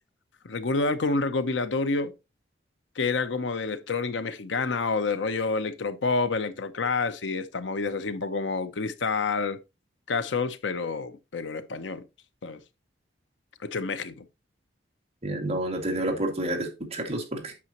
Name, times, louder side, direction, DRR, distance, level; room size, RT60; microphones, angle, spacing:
voice 1, 0.4-2.1 3.0-9.6 10.1-12.0 12.4-12.6 13.6-14.3, left 4 dB, 80° left, 0.7 m, -28 dB
voice 2, 15.2-17.5, right 1 dB, 35° right, 2.2 m, -29 dB
8.6 x 6.2 x 3.0 m
head